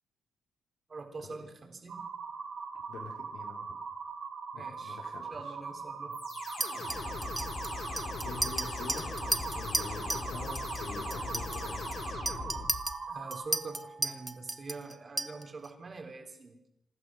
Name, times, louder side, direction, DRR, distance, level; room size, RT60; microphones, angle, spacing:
voice 1, 0.9-2.1 4.5-5.0 5.3-6.2 13.1-16.6, right 3 dB, 25° right, 4 dB, 3.8 m, -44 dB
sound 1, 1.9-13.5, right 5 dB, 50° right, 5.9 m, -41 dB
voice 2, 2.9-3.7 4.5-5.5 6.7-6.8 8.2-9.1 9.5-11.9 12.5-12.6, left 4 dB, 70° left, 0 dB, 3.8 m, -45 dB
sound 2, 6.1-12.9, left 4 dB, 45° left, 4.9 m, -40 dB
Chink clink, 6.6-10.3 10.6-10.8 11.1-15.7, right 1 dB, 10° right, 1.1 m, -35 dB
26.5 x 15.5 x 6.4 m, 0.83 s
cardioid pair, 165°, 0 cm